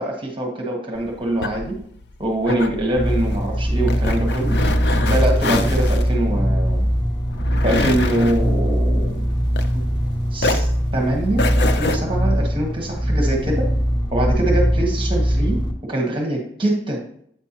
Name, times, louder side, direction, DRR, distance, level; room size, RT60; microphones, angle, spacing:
voice 1, 0.0-1.8 2.2-4.6 5.1-6.9 7.6-9.3 9.7-9.8 10.3-13.7 14.1-17.0, right 1 dB, 30° right, 0 dB, 1.2 m, -24 dB
sound 1, 0.9-10.1 10.4-12.0, left 2 dB, 70° left, 0.6 m, -26 dB
sound 2, 3.0-15.7, equal, 25° left, 0.9 m, -21 dB
8.3 x 5.3 x 2.9 m, 0.68 s
head